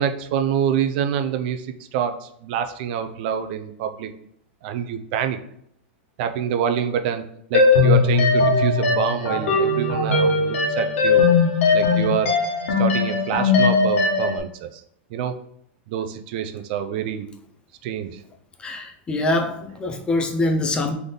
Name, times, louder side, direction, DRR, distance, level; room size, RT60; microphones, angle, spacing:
voice 1, 0.0-4.1 4.6-5.4 6.2-11.3 11.7-12.3 12.8-14.8 15.1-15.4 15.9-17.3 17.8-18.2, right 8 dB, 50° right, 7 dB, 0.5 m, -26 dB
sound 1, 7.5-14.4, left 4 dB, 90° left, 1.2 m, -19 dB
voice 2, 18.6-20.9, left 2 dB, 15° left, 5 dB, 0.4 m, -24 dB
3.7 x 3.4 x 3.8 m, 0.71 s
supercardioid pair, 150°, 7 cm